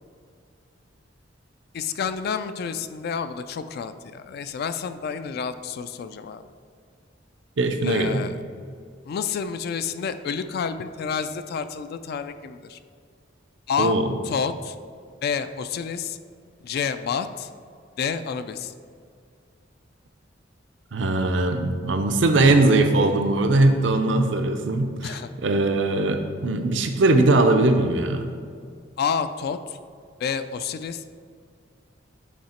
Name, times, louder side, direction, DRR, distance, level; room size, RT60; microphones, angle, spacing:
voice 1, 1.7-6.4 7.8-8.4 9.1-12.8 13.7-14.0 14.2-14.8 15.2-16.2 16.6-17.5 18.0-18.7 25.0-25.3 29.0-29.8 30.2-31.0, left 6 dB, 55° left, 11 dB, 0.3 m, -29 dB
voice 2, 7.6-8.2 13.8-14.1 20.9-25.2 25.4-28.3, right 2 dB, 75° right, 6 dB, 0.6 m, -20 dB
8.3 x 2.9 x 4.3 m, 2.2 s
head